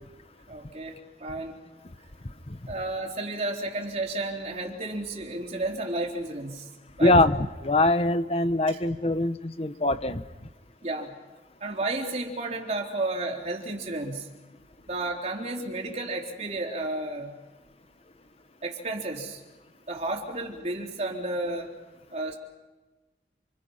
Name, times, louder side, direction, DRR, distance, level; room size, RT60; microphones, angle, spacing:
voice 1, 0.5-1.6 2.7-6.7 7.0-7.2 8.7-8.8 10.8-11.1 11.6-14.3 14.9-17.3 18.6-19.4 19.9-21.7 22.1-22.4, right 2 dB, 40° right, 1 dB, 3.8 m, -32 dB
voice 2, 7.0-10.2, left 2 dB, 35° left, 11 dB, 1.0 m, -23 dB
28.5 x 27.5 x 5.7 m, 1.2 s
head